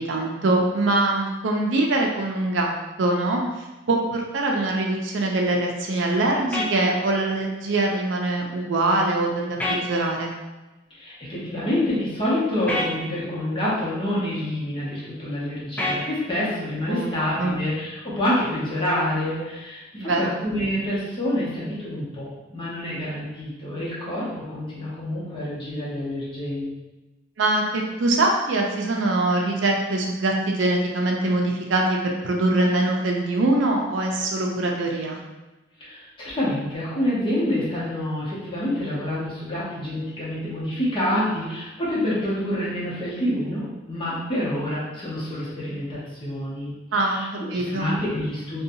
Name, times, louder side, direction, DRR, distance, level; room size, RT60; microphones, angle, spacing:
voice 1, 0.0-2.7 3.0-3.4 3.9-10.3 16.9-17.6 20.0-20.4 27.4-35.2 46.9-47.9, right 2 dB, 80° right, 0 dB, 0.5 m, -23 dB
sound 1, 6.5-6.7 9.6-9.8 12.7-12.9 15.8-16.0, left 2 dB, 10° left, 0.3 m, -25 dB
voice 2, 11.0-26.7 35.8-48.6, left 1 dB, 30° left, -8 dB, 0.9 m, -27 dB
2.7 x 2.3 x 2.7 m, 1.1 s
head